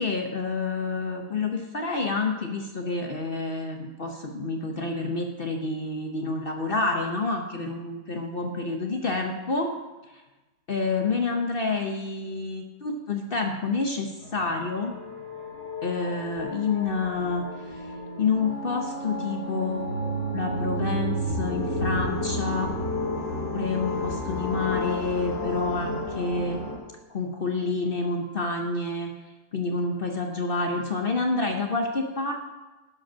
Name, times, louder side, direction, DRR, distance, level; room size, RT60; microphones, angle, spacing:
voice 1, 0.0-9.7 10.7-15.0 15.8-17.4 18.2-22.7 23.2-23.3 23.5-26.6 27.1-29.1 29.5-32.3, left 3 dB, 45° left, 3 dB, 0.7 m, -28 dB
sound 1, 14.2-26.8, equal, 75° left, 2.8 m, -31 dB
12.0 x 5.3 x 5.7 m, 1.1 s
omnidirectional pair, 1.9 m